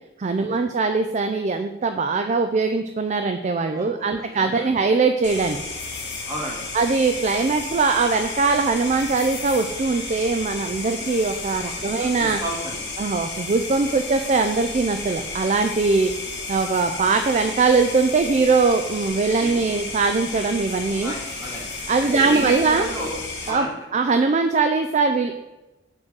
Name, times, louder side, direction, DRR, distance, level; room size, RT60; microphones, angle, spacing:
voice 1, 0.2-5.6 6.7-12.4 13.0-16.1 16.5-21.1 21.9-22.9 23.5-25.3, right 4 dB, 35° right, 7 dB, 0.3 m, -21 dB
voice 2, 3.7-4.7 6.3-6.6 11.6-12.8 19.4-19.6 21.0-21.7 22.1-23.2 23.4-23.7, right 1 dB, 15° right, -3 dB, 1.9 m, -32 dB
sound 1, 5.2-23.5, left 3 dB, 55° left, 1.9 m, -33 dB
6.2 x 3.9 x 6.0 m, 1.0 s
head